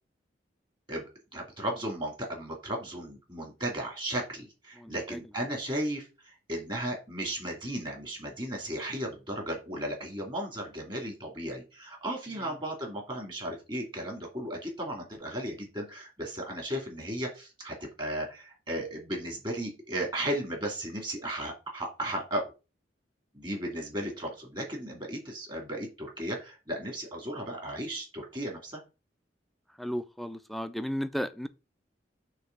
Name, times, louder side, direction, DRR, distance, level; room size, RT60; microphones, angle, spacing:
voice 1, 1.3-22.5 23.3-28.8, right 1 dB, 25° right, 2.3 m, -35 dB
voice 2, 4.8-5.2 29.8-31.5, equal, ahead, 0.4 m, -34 dB
6.4 x 3.0 x 5.8 m
head